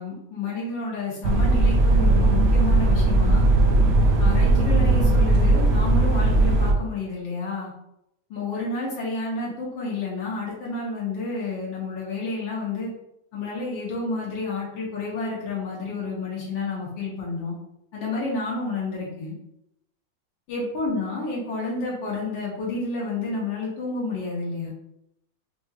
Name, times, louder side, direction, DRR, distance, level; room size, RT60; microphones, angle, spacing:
voice 1, 0.0-3.5 4.2-7.7 8.3-12.9 13.3-17.5 17.9-19.3 20.5-24.7, left 3 dB, 75° left, -5 dB, 2.0 m, -30 dB
sound 1, 1.2-6.7, right 2 dB, 85° right, 0.7 m, -18 dB
5.1 x 2.9 x 2.4 m, 0.81 s
omnidirectional pair, 2.1 m